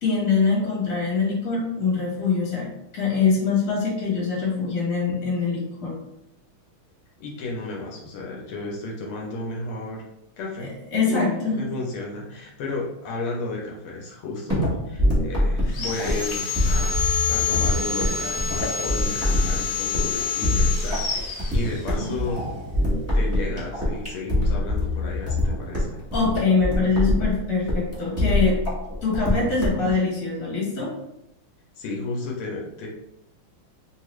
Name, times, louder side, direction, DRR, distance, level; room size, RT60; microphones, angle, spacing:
voice 1, 0.0-2.7 2.9-5.9 10.6-11.6 26.1-28.6 29.0-30.9, left 4 dB, 45° left, -4 dB, 1.5 m, -23 dB
voice 2, 7.2-10.0 10.4-10.7 11.1-22.4 23.1-26.0 31.8-32.9, left 3 dB, 80° left, -2 dB, 1.5 m, -33 dB
sound 1, 14.5-29.9, left 1 dB, 10° right, 0.7 m, -24 dB
Sawing, 15.7-22.1, left 6 dB, 65° left, 1.2 m, -28 dB
3.6 x 2.4 x 3.0 m, 0.82 s
omnidirectional pair, 2.4 m